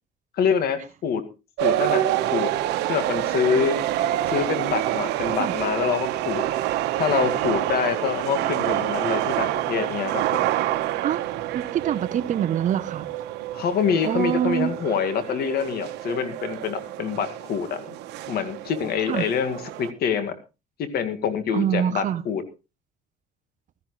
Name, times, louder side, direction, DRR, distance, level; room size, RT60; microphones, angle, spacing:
voice 1, 0.4-1.2 1.6-2.0 2.3-2.5 2.9-3.8 4.3-6.5 7.0-10.5 13.5-17.8 18.3-20.3 20.8-22.4, left 7 dB, 65° left, 2.0 m, -26 dB
sound 1, 1.6-19.9, right 13 dB, 85° right, 1.2 m, -27 dB
voice 2, 11.5-13.1 14.0-14.7 19.1-19.3 21.5-22.2, right 9 dB, 50° right, 0.8 m, -24 dB
16.0 x 13.0 x 3.2 m
cardioid pair, 110°, 17 cm